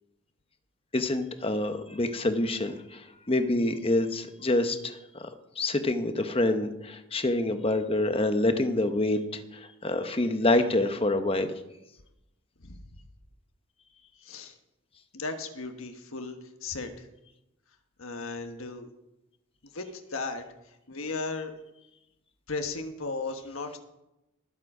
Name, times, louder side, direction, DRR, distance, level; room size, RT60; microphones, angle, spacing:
voice 1, 0.9-5.3 5.6-11.5, left 2 dB, 25° left, 8 dB, 0.9 m, -27 dB
voice 2, 14.2-14.5 15.1-17.1 18.0-18.9 19.7-20.4 20.9-21.5 22.5-23.8, left 3 dB, 70° left, 6 dB, 1.3 m, -35 dB
19.5 x 7.6 x 4.9 m, 0.92 s
head